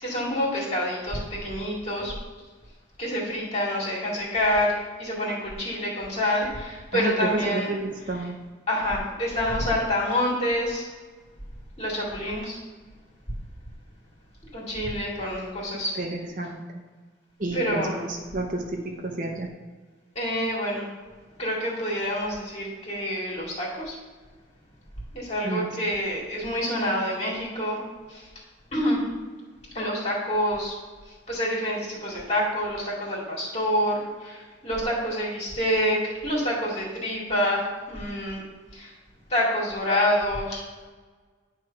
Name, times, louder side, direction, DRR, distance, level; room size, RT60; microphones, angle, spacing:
voice 1, 0.0-2.1 3.0-7.7 8.7-10.9 11.8-12.6 14.5-15.9 17.5-17.9 20.2-20.9 21.4-24.0 25.1-27.8 28.1-28.3 28.7-29.0 29.7-30.7 31.3-38.4 38.7-38.9 39.3-40.6, equal, 35° left, -5 dB, 2.2 m, -27 dB
voice 2, 6.9-8.3 15.7-16.8 17.4-19.5 25.4-25.7, right 1 dB, 45° right, 2 dB, 0.8 m, -30 dB
9.7 x 3.3 x 5.7 m, 1.4 s
head